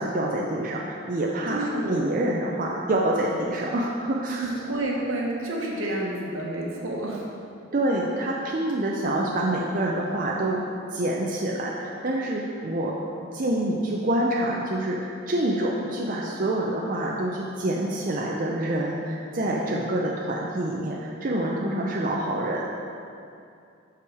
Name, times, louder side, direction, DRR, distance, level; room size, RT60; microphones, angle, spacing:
voice 1, 0.0-4.5 7.7-10.6 10.9-12.9 13.3-22.6, right 1 dB, 40° right, -3 dB, 0.5 m, -26 dB
voice 2, 1.5-2.0 4.3-7.2, right 1 dB, 75° right, -2 dB, 1.2 m, -29 dB
6.3 x 5.6 x 4.9 m, 2.5 s
head